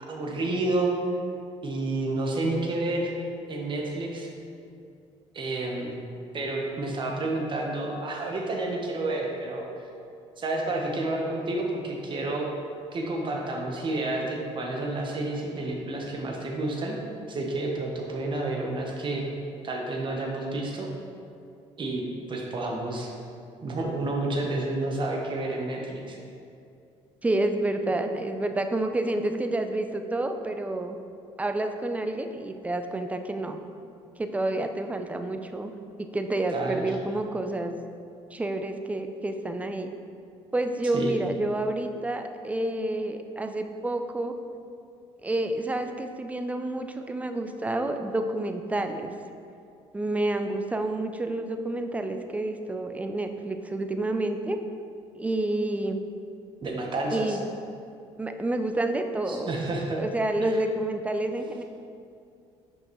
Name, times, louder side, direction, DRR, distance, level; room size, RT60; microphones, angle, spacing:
voice 1, 0.1-0.9 1.6-3.1 3.5-4.3 5.3-5.9 6.3-9.6 10.4-12.5 12.9-17.0 17.3-19.2 19.6-20.9 21.8-22.0 22.3-23.1 23.6-26.2 36.5-37.0 40.9-41.2 56.6-57.4 59.3-60.0 60.5-60.6, right 2 dB, 40° right, 0 dB, 1.1 m, -30 dB
voice 2, 27.2-31.0 31.4-33.6 34.2-35.7 36.0-37.8 38.3-39.9 40.5-44.4 45.2-49.1 49.9-54.6 55.1-56.0 57.1-57.4 58.2-59.5 59.9-61.6, right 2 dB, 10° right, 7 dB, 0.4 m, -29 dB
5.8 x 5.3 x 3.1 m, 2.5 s
supercardioid pair, 85°, 13 cm